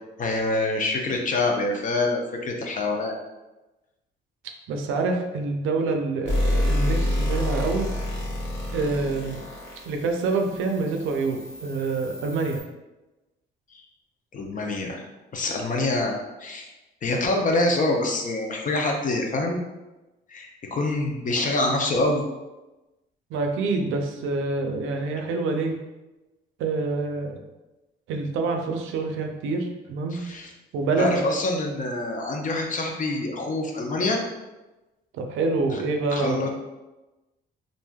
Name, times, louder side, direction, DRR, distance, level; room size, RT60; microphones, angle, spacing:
voice 1, 0.2-3.1 13.7-13.8 14.3-15.0 15.3-16.7 17.0-19.6 20.3-22.2 30.1-30.5 31.0-34.2 35.7-35.8 36.1-36.5, left 2 dB, 40° left, 2 dB, 0.6 m, -26 dB
voice 2, 4.7-7.9 8.7-9.4 9.9-12.6 23.3-25.8 26.6-27.4 28.1-30.2 30.7-31.2 35.1-36.5, right 3 dB, 85° right, 4 dB, 0.5 m, -26 dB
sound 1, 6.3-12.6, left 1 dB, 70° left, 0.9 m, -28 dB
3.2 x 2.5 x 2.3 m, 1.1 s
cardioid pair, 90°, 20 cm